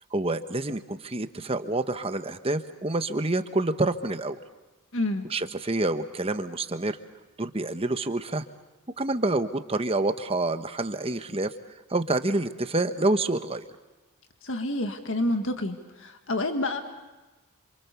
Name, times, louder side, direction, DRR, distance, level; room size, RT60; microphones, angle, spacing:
voice 1, 0.1-4.4 5.3-7.0 7.4-8.4 9.0-11.5 11.9-13.7, right 2 dB, 25° right, 9 dB, 1.1 m, -27 dB
voice 2, 4.9-5.3 14.4-16.8, left 1 dB, 60° left, 6 dB, 2.0 m, -28 dB
28.5 x 27.5 x 7.0 m, 1.1 s
head